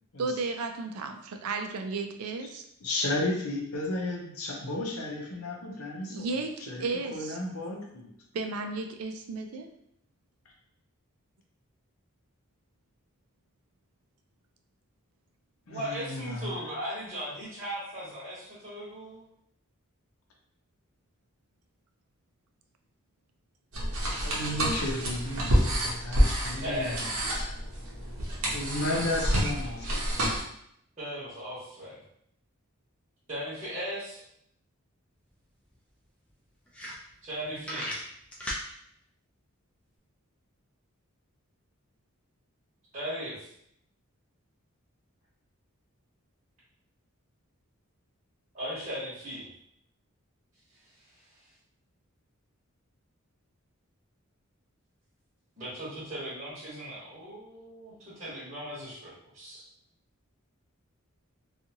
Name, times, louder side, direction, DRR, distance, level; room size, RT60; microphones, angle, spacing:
voice 1, 0.2-2.6 6.1-7.4 8.3-9.7, right 3 dB, 90° right, 5 dB, 0.4 m, -34 dB
voice 2, 2.8-6.2 6.6-6.8 7.1-8.1 15.7-16.5 24.1-27.0 27.4-27.6 28.5-30.0, left 1 dB, 80° left, 0 dB, 0.7 m, -33 dB
voice 3, 15.7-19.2 26.6-27.2 31.0-32.0 33.3-34.2 37.2-37.9 42.9-43.5 48.5-49.5 51.0-51.4 55.6-59.6, equal, 35° right, -10 dB, 1.0 m, -37 dB
sound 1, 23.7-30.4, equal, 70° right, 0.8 m, -28 dB
sound 2, 35.3-35.4 35.7-35.8 36.3-36.4 36.7-37.3 37.6-38.7, equal, 5° left, 0.5 m, -35 dB
2.6 x 2.4 x 2.8 m, 0.72 s
head